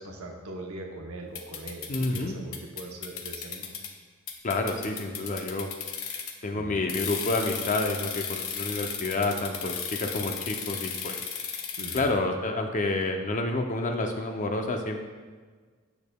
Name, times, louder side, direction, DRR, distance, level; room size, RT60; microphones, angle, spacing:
voice 1, 0.0-3.7 6.5-6.9 11.8-12.2, right 2 dB, 85° right, 1 dB, 0.9 m, -41 dB
sound 1, 1.3-2.2 2.5-3.9 4.3-6.4 6.9-12.0, left 7 dB, 75° left, 0.7 m, -35 dB
voice 2, 1.9-2.4 4.4-5.7 6.4-9.7 10.0-11.2 11.9-15.0, left 2 dB, 40° left, 3 dB, 0.6 m, -29 dB
8.4 x 7.0 x 2.3 m, 1.5 s
head